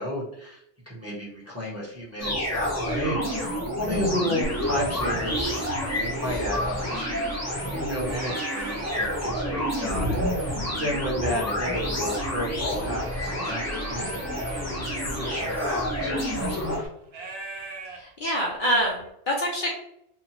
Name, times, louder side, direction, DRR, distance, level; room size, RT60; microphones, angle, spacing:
voice 1, 0.0-14.2 14.5-16.9, equal, 15° right, -7 dB, 0.9 m, -32 dB
sound 1, 1.1-1.2 1.8-2.0 2.6-2.7 3.2-4.1 4.6-6.0 6.6-19.1, right 3 dB, 70° right, 0.9 m, -42 dB
sound 2, 2.2-16.8, equal, 15° left, 0.7 m, -29 dB
Chirp tweet / Wind / Stream, 4.4-16.9, left 1 dB, 75° left, 1.1 m, -39 dB
voice 2, 17.9-19.7, equal, 55° left, -3 dB, 0.7 m, -26 dB
2.7 x 2.4 x 2.9 m, 0.75 s
omnidirectional pair, 1.1 m